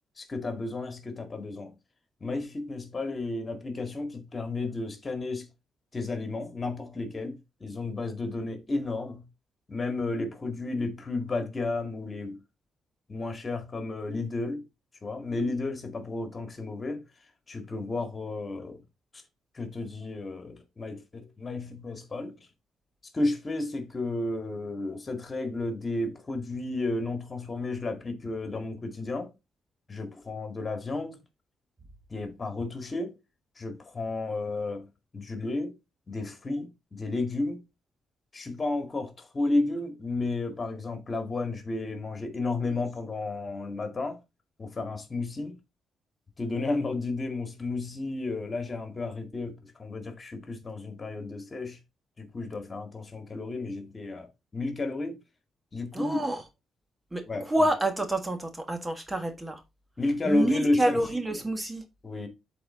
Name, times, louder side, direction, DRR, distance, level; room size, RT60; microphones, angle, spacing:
voice 1, 0.2-1.7 2.2-5.5 5.9-9.2 9.7-12.4 13.1-14.6 15.0-17.0 17.5-18.8 19.5-22.5 23.1-29.3 29.9-31.2 32.1-33.2 33.6-34.9 35.1-35.7 36.1-37.6 38.3-44.2 44.6-45.5 46.4-51.8 52.2-54.3 54.5-55.2 55.7-56.2 57.3-57.7 60.0-61.0 62.0-62.3, left 2 dB, 35° left, 2.1 m, -32 dB
voice 2, 55.9-56.4 57.1-59.6 60.2-61.8, right 1 dB, 20° right, 1.5 m, -28 dB
7.8 x 4.2 x 3.8 m
cardioid pair, 65°, 0 cm